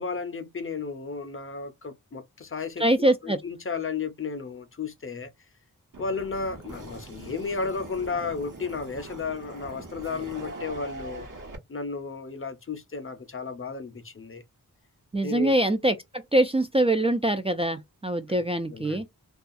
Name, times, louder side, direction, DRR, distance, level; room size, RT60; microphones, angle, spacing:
voice 1, 0.0-2.8 3.2-5.3 6.0-11.3 11.7-14.4 15.2-15.6 18.7-19.0, left 4 dB, 40° left, 0.5 m, -33 dB
voice 2, 2.8-3.4 15.1-19.1, right 1 dB, 20° right, 0.4 m, -24 dB
sound 1, 5.9-11.6, right 2 dB, 65° right, 1.0 m, -41 dB
2.4 x 2.3 x 2.5 m
wide cardioid pair, 60°, 35 cm